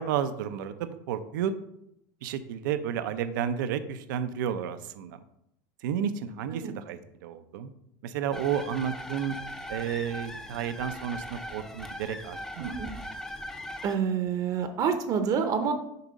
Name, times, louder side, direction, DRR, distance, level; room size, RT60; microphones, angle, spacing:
voice 1, 0.0-1.5 2.2-5.2 5.8-7.7 8.0-9.3 9.7-12.8, right 8 dB, 85° right, 11 dB, 0.5 m, -32 dB
sound 1, 8.3-14.0, left 1 dB, 5° left, 0.6 m, -39 dB
voice 2, 12.6-12.9 13.8-15.7, right 6 dB, 40° right, 7 dB, 0.7 m, -28 dB
6.8 x 3.6 x 5.1 m, 0.77 s
supercardioid pair, 140°, 10 cm